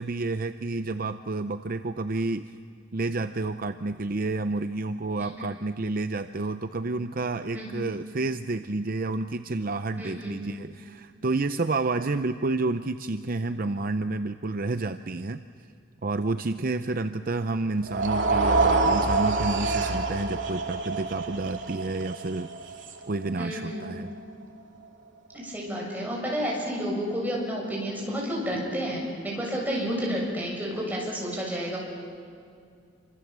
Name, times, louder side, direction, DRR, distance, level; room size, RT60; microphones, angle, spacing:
voice 1, 0.0-2.5 2.9-15.4 16.0-22.8 23.1-24.1, right 3 dB, 45° right, 10 dB, 0.6 m, -30 dB
voice 2, 10.0-10.4 23.4-23.9 25.3-31.8, equal, 10° right, -3 dB, 7.2 m, -30 dB
sound 1, 17.8-24.1, right 3 dB, 70° right, 2.6 m, -27 dB
28.0 x 25.5 x 7.5 m, 2.3 s
head